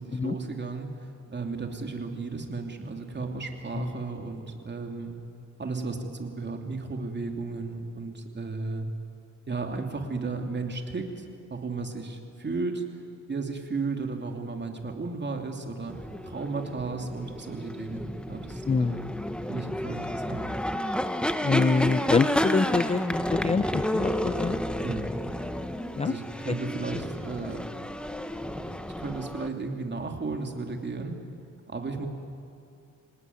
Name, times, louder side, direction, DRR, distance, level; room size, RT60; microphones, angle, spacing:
voice 1, 0.0-5.2 5.6-8.9 9.5-12.9 13.3-19.1 19.5-20.5 24.8-25.1 26.0-27.7 29.0-31.2 31.7-32.1, right 3 dB, 35° right, 3 dB, 2.8 m, -34 dB
sound 1, 15.9-29.5, equal, 5° left, 1.0 m, -31 dB
voice 2, 18.6-19.1 21.4-24.6 26.0-26.1 26.5-26.6, left 4 dB, 20° left, 12 dB, 0.5 m, -26 dB
26.0 x 18.5 x 9.6 m, 2.6 s
cardioid pair, 110°, 33 cm